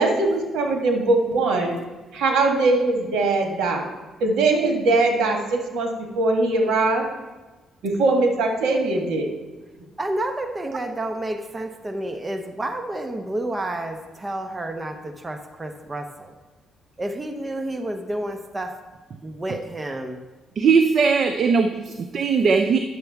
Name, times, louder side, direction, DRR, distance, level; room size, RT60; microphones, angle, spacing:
voice 1, 0.0-1.8 2.1-3.9 4.2-5.9 6.1-7.0 7.8-9.3, right 2 dB, 80° right, 2 dB, 1.5 m, -21 dB
voice 2, 10.0-16.3 17.0-18.7 19.2-20.2, right 1 dB, 20° right, 6 dB, 0.8 m, -30 dB
voice 3, 20.6-22.8, right 5 dB, 55° right, 7 dB, 0.5 m, -19 dB
10.0 x 6.9 x 3.5 m, 1.2 s
cardioid pair, 90°, 0 cm